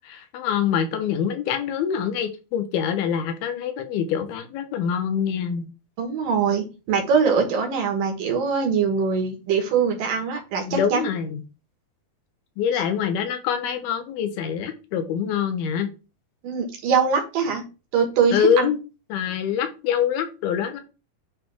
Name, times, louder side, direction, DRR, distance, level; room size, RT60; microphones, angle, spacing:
voice 1, 0.0-5.7 10.7-11.4 12.6-15.9 18.3-18.8 19.1-20.8, left 8 dB, 85° left, 8 dB, 2.7 m, -25 dB
voice 2, 6.0-11.1 12.7-12.8 16.4-17.6 17.9-18.7, right 6 dB, 65° right, 2 dB, 2.9 m, -22 dB
10.0 x 3.4 x 3.4 m, 0.31 s
omnidirectional pair, 4.5 m